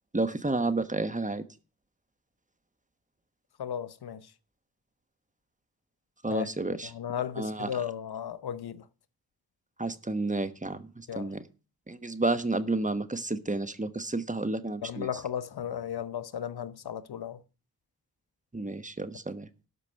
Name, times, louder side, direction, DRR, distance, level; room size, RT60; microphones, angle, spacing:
voice 1, 0.1-1.4 6.2-6.9 7.4-7.7 9.8-11.4 11.9-15.1 18.5-19.5, right 2 dB, 20° right, 1.2 m, -31 dB
voice 2, 3.6-4.2 6.3-6.5 6.8-8.8 11.1-11.3 14.8-17.4, left 9 dB, 85° left, 0.8 m, -35 dB
12.5 x 5.2 x 7.5 m
cardioid pair, 60°, 37 cm